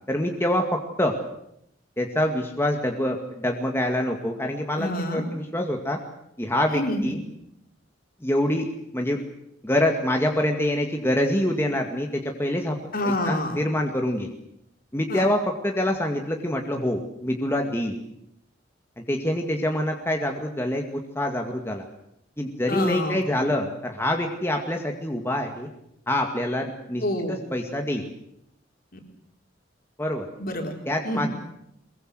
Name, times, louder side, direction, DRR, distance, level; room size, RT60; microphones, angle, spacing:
voice 1, 0.1-1.1 2.0-6.0 6.4-7.2 8.2-8.7 8.9-9.2 9.6-12.8 13.3-14.3 14.9-17.9 19.1-21.8 22.4-25.7 26.1-27.0 27.5-28.0 30.0-30.3 30.9-31.3, left 1 dB, 15° left, 2 dB, 2.1 m, -25 dB
voice 2, 4.8-5.2 6.7-7.2 12.9-13.6 15.1-15.3 22.7-23.3 27.0-27.4 28.9-29.0 30.4-30.7 31.0-31.3, left 1 dB, 50° left, 3 dB, 4.5 m, -27 dB
23.5 x 22.0 x 7.9 m, 0.78 s
head